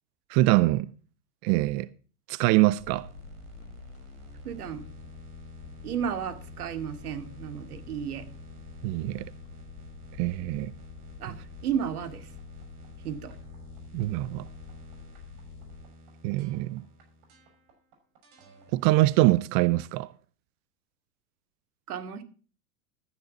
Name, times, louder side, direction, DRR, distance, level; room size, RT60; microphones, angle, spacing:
voice 1, 0.3-0.9 1.4-1.9 2.3-3.1 8.8-9.3 10.2-10.7 13.9-14.5 16.2-16.8 18.7-20.1, right 18 dB, 30° right, 0.4 m, -24 dB
sound 1, 2.8-15.8, left 5 dB, 30° left, 3.7 m, -47 dB
sound 2, 2.8-19.9, equal, 50° right, 5.9 m, -51 dB
voice 2, 4.4-4.8 5.8-8.2 11.2-12.3 13.0-13.3 21.9-22.2, right 8 dB, 70° right, 2.5 m, -33 dB
13.5 x 10.0 x 4.0 m
hypercardioid pair, 110°, 46 cm